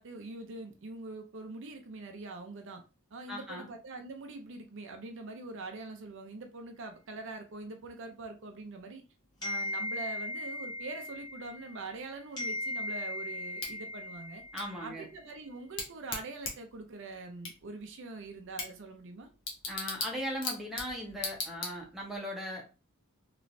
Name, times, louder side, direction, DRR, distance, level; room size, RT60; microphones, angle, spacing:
voice 1, 0.0-2.8 3.1-9.0 9.4-14.4 14.8-19.3, right 3 dB, 60° right, 0.5 m, -44 dB
voice 2, 3.3-3.7 14.5-15.1 19.7-22.9, equal, ahead, 0.9 m, -38 dB
sound 1, 9.4-12.0 12.4-14.9, left 2 dB, 20° left, 1.3 m, -38 dB
Bicycle / Tick, 13.6-22.2, left 3 dB, 60° left, 1.0 m, -41 dB
3.2 x 3.0 x 2.6 m
head